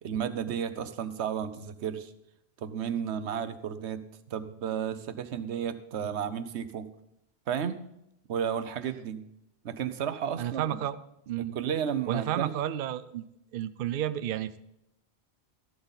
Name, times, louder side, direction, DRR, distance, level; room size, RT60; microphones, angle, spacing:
voice 1, 0.0-2.1 2.6-4.0 4.3-6.9 7.5-7.8 8.3-9.2 9.6-10.8 11.4-12.5, right 8 dB, 85° right, 12 dB, 1.1 m, -33 dB
voice 2, 10.4-11.0 11.3-11.6 12.1-13.3 13.5-14.6, right 11 dB, 60° right, 13 dB, 0.7 m, -31 dB
13.5 x 12.0 x 4.0 m, 0.80 s
omnidirectional pair, 1.1 m